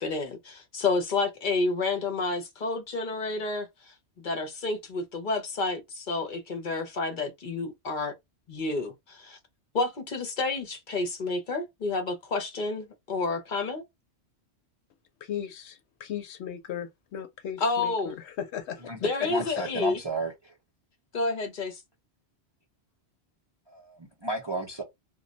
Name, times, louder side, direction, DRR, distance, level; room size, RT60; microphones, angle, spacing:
voice 1, 0.0-3.7 4.2-8.1 8.5-9.4 9.7-13.8 17.6-18.1 19.0-20.0 21.1-21.8, left 3 dB, 50° left, 0.7 m, -30 dB
voice 2, 15.2-19.6, left 9 dB, 80° left, 0.9 m, -37 dB
voice 3, 19.3-20.6 23.7-24.8, right 1 dB, 30° right, 0.5 m, -33 dB
2.2 x 2.1 x 3.7 m
omnidirectional pair, 1.1 m